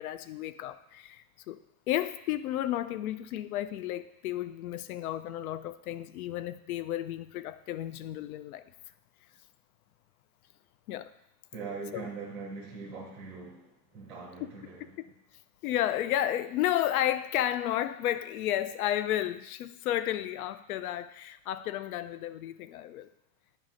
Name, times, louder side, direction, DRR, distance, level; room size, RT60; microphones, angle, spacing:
voice 1, 0.0-1.6 1.9-8.6 10.9-11.1 11.9-12.1 15.6-23.1, left 12 dB, 75° left, 13 dB, 0.6 m, -32 dB
voice 2, 11.5-14.9, right 4 dB, ahead, -3 dB, 0.6 m, -42 dB
9.2 x 3.2 x 5.0 m, 0.82 s
supercardioid pair, 180°, 44 cm